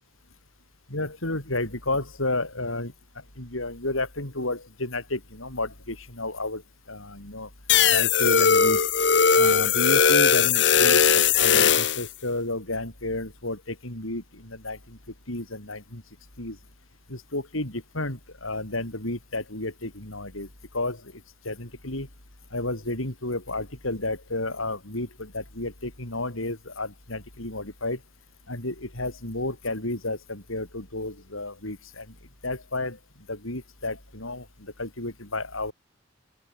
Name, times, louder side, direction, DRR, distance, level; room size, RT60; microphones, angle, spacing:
voice 1, 0.9-2.9 3.4-6.6 6.9-7.5 7.9-8.8 9.4-15.0 15.3-16.0 16.4-16.6 17.1-20.5 20.7-21.1 21.4-22.1 22.5-28.0 28.5-32.1 32.4-33.0 33.3-35.7, left 2 dB, 80° left, 6.6 m, -32 dB
sound 1, 7.7-12.1, left 6 dB, 55° left, 1.6 m, -19 dB
open air
head